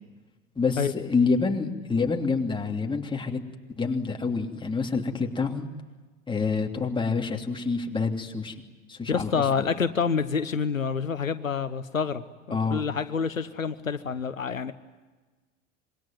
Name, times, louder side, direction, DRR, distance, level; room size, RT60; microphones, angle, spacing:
voice 1, 0.6-3.4 3.8-5.7 6.3-8.5 8.9-9.4 12.5-12.9, left 4 dB, 10° left, 2 dB, 3.0 m, -27 dB
voice 2, 9.1-12.2 12.5-14.7, left 6 dB, 85° left, 12 dB, 1.1 m, -27 dB
26.5 x 23.0 x 9.4 m, 1.3 s
figure-of-eight pair, 80°, 39 cm